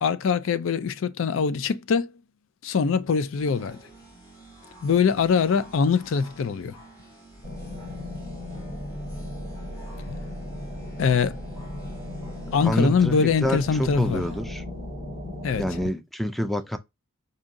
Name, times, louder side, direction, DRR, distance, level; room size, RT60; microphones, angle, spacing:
voice 1, 0.0-2.1 2.6-3.8 4.8-6.8 11.0-11.4 12.5-14.2 15.4-15.6, left 6 dB, 70° left, 0.4 m, -23 dB
sound 1, 3.4-14.4, right 2 dB, 15° left, 1.9 m, -49 dB
sound 2, 7.4-15.9, left 1 dB, 45° left, 2.6 m, -36 dB
voice 2, 12.6-14.6 15.6-16.8, equal, ahead, 0.3 m, -27 dB
5.0 x 2.7 x 2.5 m
head